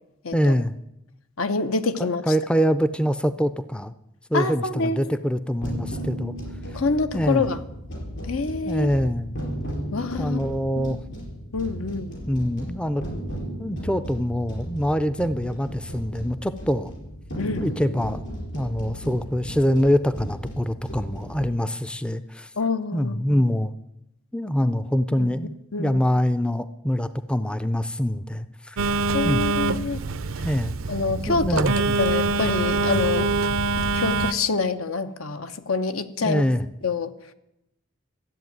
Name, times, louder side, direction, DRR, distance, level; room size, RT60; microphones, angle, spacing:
voice 1, 0.3-0.7 2.0-3.9 4.3-6.4 7.1-7.5 8.7-9.3 10.2-11.0 12.3-13.0 13.6-16.9 17.6-18.2 18.5-22.5 22.9-23.7 24.3-28.8 29.2-29.5 30.4-30.7 31.3-32.0 36.2-36.7, equal, 5° left, 12 dB, 0.4 m, -24 dB
voice 2, 1.4-2.2 4.3-5.0 6.7-7.6 8.2-8.9 9.9-10.4 10.8-10.9 11.5-12.1 17.4-17.8 22.6-23.4 25.2-25.3 25.7-26.0 29.1-30.0 30.9-33.3 33.8-36.4 36.8-37.1, left 4 dB, 80° left, 10 dB, 1.0 m, -26 dB
sound 1, 5.6-21.4, right 1 dB, 60° left, 4.7 m, -35 dB
Telephone, 28.8-34.3, right 3 dB, 75° right, 0.6 m, -24 dB
13.5 x 8.0 x 9.3 m, 0.87 s
head